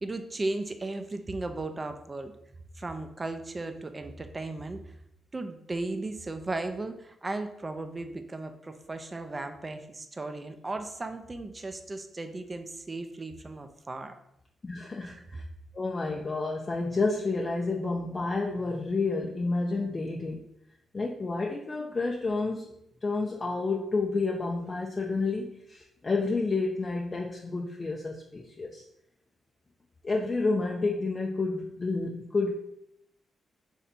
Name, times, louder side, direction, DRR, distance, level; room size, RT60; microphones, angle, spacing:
voice 1, 0.0-2.3 2.8-4.8 5.3-14.1 15.0-15.2, right 2 dB, 30° right, 7 dB, 0.5 m, -36 dB
voice 2, 14.6-15.4 15.7-20.4 20.9-22.7 23.0-28.8 30.0-32.5, left 3 dB, 35° left, -1 dB, 0.5 m, -30 dB
3.3 x 2.7 x 4.1 m, 0.76 s
supercardioid pair, 60°, 0 cm